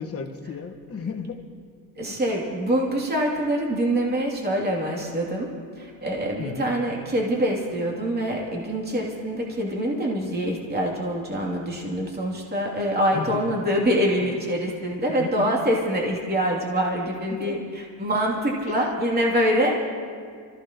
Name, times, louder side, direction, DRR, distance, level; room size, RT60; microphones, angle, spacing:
voice 1, 0.0-1.4 2.1-2.2 6.4-6.7 13.1-13.6 15.1-15.7 17.3-17.6 18.7-19.0 19.3-19.4 19.7-19.9, left 6 dB, 30° left, 4 dB, 1.5 m, -34 dB
voice 2, 2.0-17.6 18.0-19.7, equal, 20° right, -2 dB, 3.0 m, -25 dB
25.0 x 15.5 x 3.1 m, 2.1 s
supercardioid pair, 100°, 49 cm